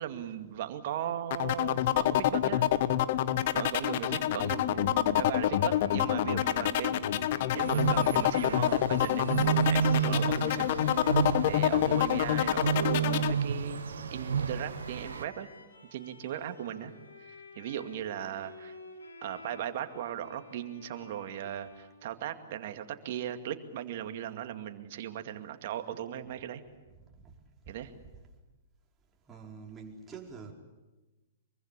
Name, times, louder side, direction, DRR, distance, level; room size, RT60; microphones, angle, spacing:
voice 1, 0.0-2.7 3.5-7.3 7.5-10.8 11.4-13.8 14.1-15.5 15.9-16.9 17.6-18.8 19.2-26.6 27.7-27.9, right 10 dB, 55° right, 7 dB, 2.3 m, -38 dB
sound 1, 1.3-13.3, left 12 dB, 50° left, 1.1 m, -27 dB
Bowed string instrument, 5.1-22.6, left 2 dB, 90° left, 6.1 m, -51 dB
sound 2, 7.5-15.2, right 7 dB, 75° right, 1.2 m, -31 dB
voice 2, 29.3-30.5, right 5 dB, 20° right, 0 dB, 4.7 m, -45 dB
25.0 x 23.5 x 8.4 m, 1.1 s
hypercardioid pair, 115°, 0 cm